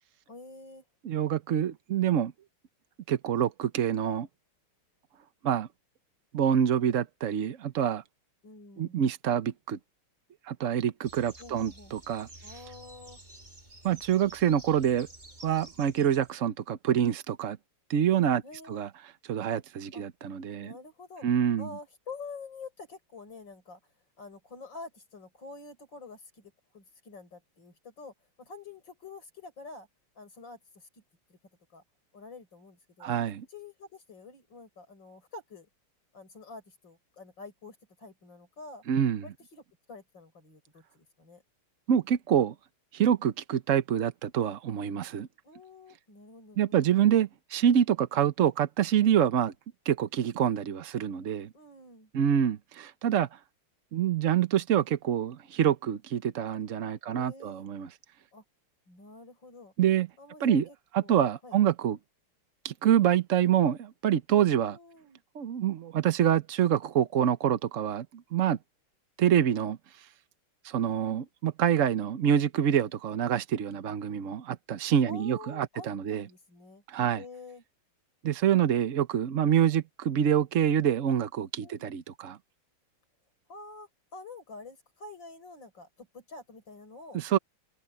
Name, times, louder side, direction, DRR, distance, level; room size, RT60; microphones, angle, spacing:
voice 1, 0.3-0.8 8.4-9.0 11.4-12.0 12.4-13.2 18.4-18.8 19.9-20.0 20.6-21.3 21.6-23.8 24.2-29.9 30.1-30.9 31.3-31.4 31.7-31.8 32.1-33.2 33.5-35.7 36.1-38.8 39.2-41.4 45.4-47.0 51.5-52.1 57.0-57.7 58.3-58.4 58.9-59.7 60.2-60.6 61.0-61.6 64.5-65.2 75.1-77.6 81.6-81.9 83.5-87.2, left 3 dB, 55° left, 6.8 m, -47 dB
voice 2, 1.0-2.3 3.1-4.3 5.4-5.7 6.3-8.0 8.8-9.8 10.5-12.3 13.8-15.1 15.4-17.6 17.9-18.4 18.7-18.9 19.3-20.8 21.2-21.7 33.0-33.4 38.9-39.2 41.9-42.5 42.9-45.3 46.6-49.5 49.9-51.5 52.1-53.4 53.9-57.9 59.8-60.1 60.4-60.6 60.9-62.0 62.6-64.8 65.4-68.1 68.3-68.6 69.2-70.1 70.6-76.2 76.9-77.2 78.2-82.4 87.1-87.4, right 9 dB, 60° right, 0.8 m, -26 dB
sound 1, 11.0-16.3, right 1 dB, 20° right, 2.8 m, -51 dB
open air
omnidirectional pair, 2.4 m